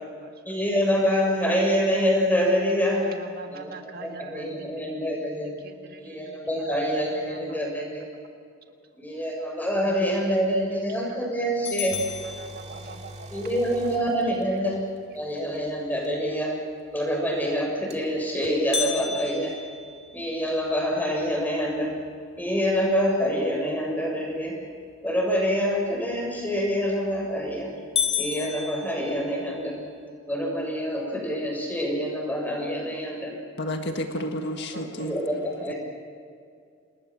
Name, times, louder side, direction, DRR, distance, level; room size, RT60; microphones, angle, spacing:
voice 1, 0.5-3.0 3.5-5.5 6.0-8.0 9.0-12.0 13.3-14.8 15.1-16.5 16.9-19.5 20.1-21.9 22.4-24.5 25.0-27.7 28.2-29.8 30.3-33.3 35.0-35.7, equal, 10° left, 0 dB, 7.0 m, -26 dB
voice 2, 3.0-4.7 5.6-6.6 7.3-7.6 9.8-9.9 11.1-11.2 12.4-13.1 34.7-34.8, right 3 dB, 50° right, 5 dB, 1.8 m, -43 dB
sound 1, 11.6-13.2 18.7-20.9 21.4-21.5 22.0-22.1 22.7-23.1 26.7-27.1 27.5-27.6 28.0-29.7, left 7 dB, 30° left, 3.5 m, -32 dB
sound 2, 11.9-14.8 16.0-16.1 17.9-18.0 18.4-18.5, right 1 dB, 35° right, 2.3 m, -43 dB
voice 3, 33.6-35.2 35.7-35.8, equal, 55° left, 5 dB, 1.7 m, -30 dB
28.5 x 20.5 x 7.5 m, 2.3 s
head